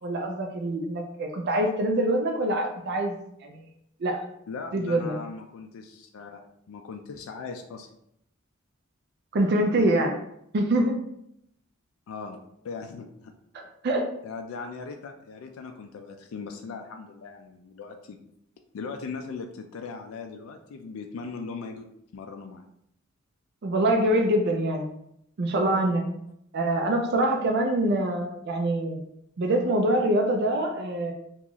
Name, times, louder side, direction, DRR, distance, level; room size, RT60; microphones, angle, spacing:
voice 1, 0.0-3.2 3.4-3.6 4.0-4.3 4.7-5.2 9.3-10.1 10.5-11.0 13.5-14.0 23.6-24.9 25.4-26.0 26.5-29.0 29.4-31.1, right 1 dB, 55° right, 2 dB, 0.4 m, -25 dB
voice 2, 4.5-6.4 6.7-7.9 12.1-13.3 14.2-18.2 18.7-21.9 22.1-22.7 27.1-27.4, left 4 dB, 75° left, 4 dB, 0.4 m, -39 dB
2.9 x 2.4 x 3.8 m, 0.75 s
head